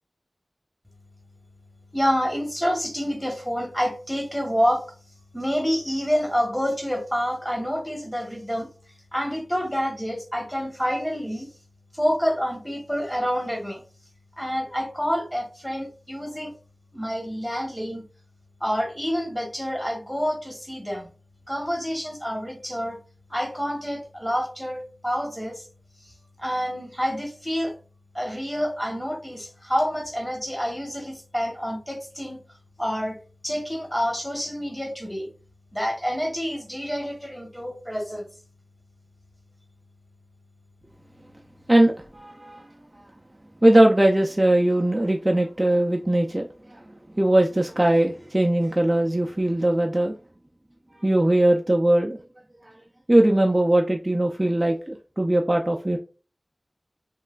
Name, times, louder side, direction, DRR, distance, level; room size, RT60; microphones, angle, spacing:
voice 1, 1.9-4.9 5.3-8.7 9.1-11.5 11.9-13.8 14.4-16.5 16.9-18.0 18.6-21.1 21.5-23.0 23.3-25.7 26.0-26.1 26.4-27.7 28.1-32.4 32.8-35.3 35.7-38.3, equal, 5° left, 1.1 m, -28 dB
voice 2, 41.7-42.7 43.6-46.8 47.1-50.1 51.0-52.2 52.6-52.7 53.1-56.0, right 1 dB, 25° right, 0.4 m, -20 dB
3.2 x 2.9 x 2.3 m
wide cardioid pair, 45°, 0 cm